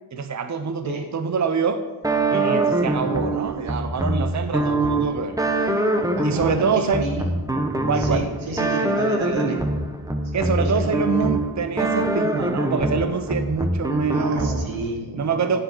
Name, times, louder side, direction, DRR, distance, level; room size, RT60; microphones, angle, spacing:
voice 1, 0.1-1.8 2.3-5.4 6.2-7.1 7.9-8.3 10.3-14.6 15.1-15.6, right 5 dB, 40° right, 8 dB, 0.8 m, -25 dB
sound 1, 2.0-14.9, right 2 dB, 10° right, 1.0 m, -24 dB
voice 2, 6.2-7.3 7.9-9.6 10.3-11.3 14.1-15.5, right 2 dB, 85° right, 2 dB, 1.8 m, -31 dB
9.9 x 8.1 x 4.5 m, 1.2 s
cardioid pair, 65°, 46 cm